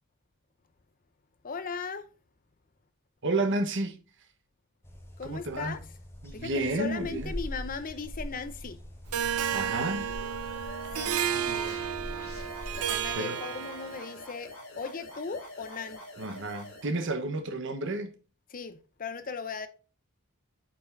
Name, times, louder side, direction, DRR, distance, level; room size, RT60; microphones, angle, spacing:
voice 1, 1.4-2.1 5.2-5.8 6.3-8.8 10.9-11.1 12.8-16.0 18.5-19.7, left 5 dB, 40° left, 0.6 m, -37 dB
voice 2, 3.2-4.0 5.2-5.8 6.2-7.3 9.1-10.1 11.2-11.8 13.1-13.4 16.2-18.1, right 2 dB, 55° right, 1.1 m, -32 dB
sound 1, 4.8-13.1, equal, 10° left, 1.5 m, -43 dB
Harp, 9.1-14.1, right 8 dB, 80° right, 0.7 m, -32 dB
sound 2, 9.7-16.9, left 1 dB, 65° left, 3.3 m, -46 dB
8.4 x 5.3 x 2.6 m
head